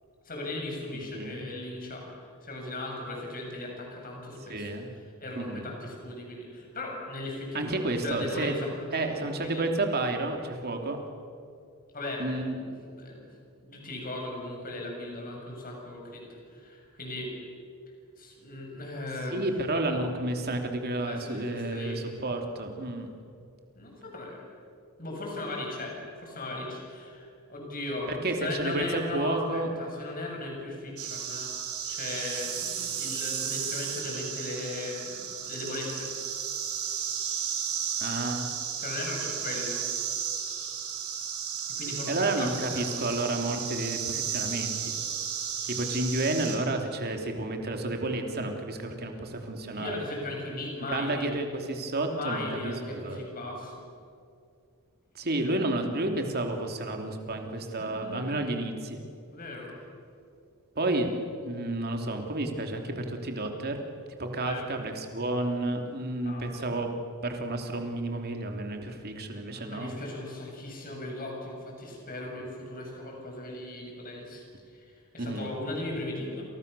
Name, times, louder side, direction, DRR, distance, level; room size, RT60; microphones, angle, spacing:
voice 1, 0.2-2.1 2.4-4.7 5.2-8.7 9.0-9.6 11.9-13.2 13.6-17.3 18.2-19.4 21.1-22.1 23.7-24.4 25.0-31.5 31.8-36.1 38.8-39.8 41.8-43.1 49.7-51.3 52.0-53.8 57.8-58.3 59.3-59.7 64.4-64.7 66.2-66.5 68.8-69.0 69.5-76.5, left 2 dB, 40° left, 0 dB, 7.6 m, -37 dB
voice 2, 4.5-4.9 5.4-5.6 7.5-8.6 8.9-11.0 12.2-12.6 19.3-23.1 28.1-29.7 38.0-38.5 42.1-44.9 45.6-49.9 50.9-53.2 55.1-59.0 60.7-61.1 61.4-63.8 64.2-66.9 67.2-69.9 75.2-75.5, right 2 dB, 45° right, 4 dB, 3.1 m, -31 dB
sound 1, 31.0-46.6, right 8 dB, 70° right, 5.2 m, -34 dB
29.0 x 28.5 x 7.0 m, 2.4 s
head